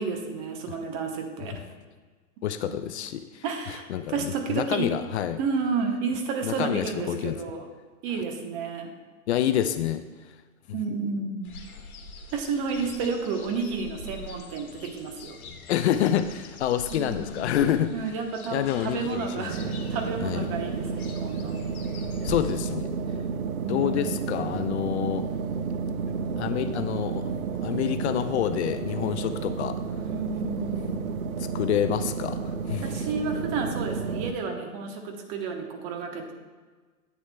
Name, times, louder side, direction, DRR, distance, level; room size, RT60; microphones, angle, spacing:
voice 1, 0.0-1.6 2.7-2.8 3.4-4.9 5.4-7.7 8.0-8.9 10.7-11.5 12.3-15.4 16.9-17.3 17.9-21.6 23.6-24.2 30.0-31.0 32.8-36.3, right 5 dB, 35° right, 4 dB, 1.0 m, -31 dB
voice 2, 2.4-5.4 6.4-7.4 9.3-10.3 15.7-17.9 18.5-19.6 20.2-20.5 22.2-22.9 23.7-25.3 26.4-27.2 27.6-29.8 31.4-33.1, left 10 dB, 50° left, 10 dB, 0.5 m, -28 dB
sound 1, 11.4-22.6, left 3 dB, 75° left, 1.3 m, -43 dB
sound 2, 19.5-34.3, right 5 dB, 75° right, 0.6 m, -31 dB
9.6 x 8.0 x 2.3 m, 1.4 s
hypercardioid pair, 120°, 43 cm